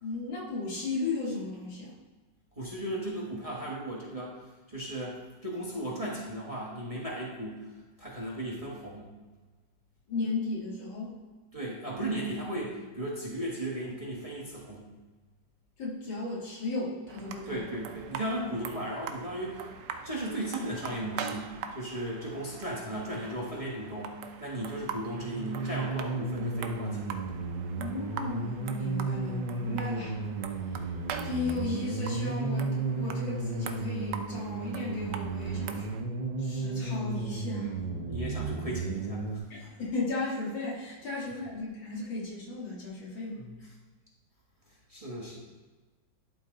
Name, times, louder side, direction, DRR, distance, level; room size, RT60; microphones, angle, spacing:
voice 1, 0.0-1.9 10.1-11.1 15.8-17.6 27.8-30.2 30.7-30.8 31.2-36.1 36.4-37.8 39.5-43.4, left 3 dB, 85° left, -5 dB, 2.6 m, -35 dB
voice 2, 2.6-4.4 4.7-7.6 8.0-9.1 11.5-14.9 17.5-19.7 20.0-24.1 24.4-27.2 29.2-29.4 38.0-39.7 44.9-45.4, right 1 dB, 20° right, -5 dB, 1.2 m, -36 dB
sound 1, 17.1-36.0, right 7 dB, 70° right, 1.2 m, -43 dB
sound 2, 25.0-39.4, right 3 dB, 45° right, 0.5 m, -34 dB
11.5 x 3.9 x 3.9 m, 1.3 s
omnidirectional pair, 2.0 m